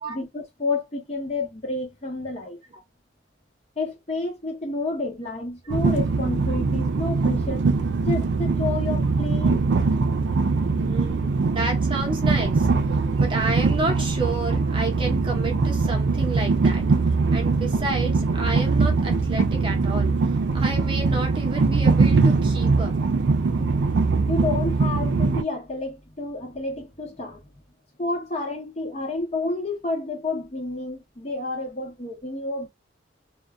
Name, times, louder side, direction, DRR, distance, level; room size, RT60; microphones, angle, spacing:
voice 1, 0.0-2.6 3.8-7.6 8.0-9.7 23.6-23.7 24.3-27.4 28.0-32.7, left 2 dB, 35° left, 0.8 m, -30 dB
Train, 5.7-25.4, right 4 dB, 80° right, 0.4 m, -22 dB
voice 2, 10.7-12.7 13.2-16.8 17.3-20.2 20.5-22.9, right 3 dB, 30° right, 0.7 m, -30 dB
2.5 x 2.1 x 2.2 m
head